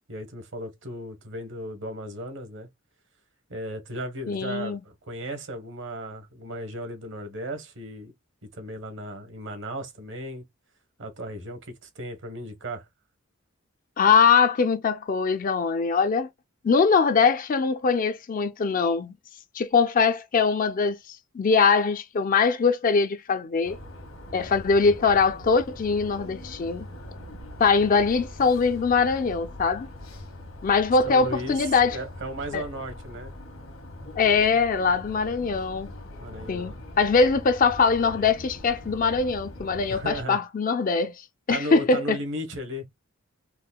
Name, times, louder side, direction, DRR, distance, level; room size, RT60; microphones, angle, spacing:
voice 1, 0.1-2.7 3.5-8.1 8.5-10.4 11.0-12.9 31.0-33.3 36.2-36.8 39.9-40.4 41.5-42.8, right 1 dB, 60° right, 1.1 m, -35 dB
voice 2, 4.3-4.8 14.0-16.3 16.6-19.1 19.6-21.0 21.3-23.8 24.3-26.9 27.6-29.9 30.6-32.0 32.5-32.6 34.2-35.9 36.5-41.2 41.5-42.2, left 5 dB, 40° left, 0.4 m, -22 dB
sound 1, 23.6-40.2, left 1 dB, 80° left, 1.4 m, -42 dB
4.7 x 2.1 x 2.3 m
head